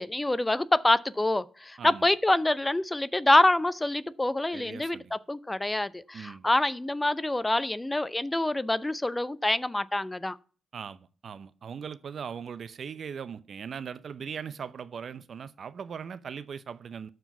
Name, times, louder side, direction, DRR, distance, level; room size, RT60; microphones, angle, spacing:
voice 1, 0.0-10.4, left 1 dB, 15° left, 0.6 m, -26 dB
voice 2, 4.5-5.2 6.1-6.5 10.7-17.1, right 7 dB, 60° right, 0.7 m, -39 dB
12.5 x 4.6 x 6.9 m
supercardioid pair, 50°, 0 cm